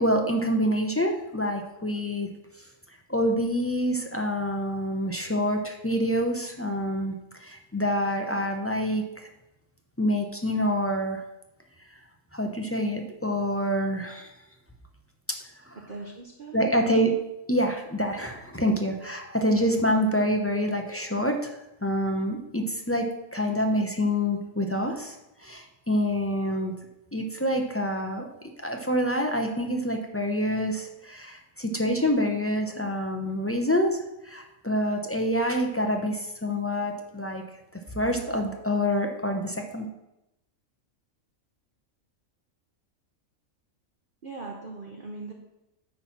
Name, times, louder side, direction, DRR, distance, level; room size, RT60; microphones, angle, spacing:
voice 1, 0.0-2.3 3.1-9.3 10.0-11.2 12.3-14.3 15.6-15.8 16.5-17.1 17.5-21.4 21.8-25.2 25.4-26.7 27.1-37.4 37.7-39.9, equal, 15° left, 2 dB, 0.6 m, -27 dB
voice 2, 15.7-16.6 44.2-45.3, right 3 dB, 45° right, 0 dB, 1.0 m, -40 dB
9.5 x 4.3 x 6.0 m, 0.91 s
omnidirectional pair, 1.5 m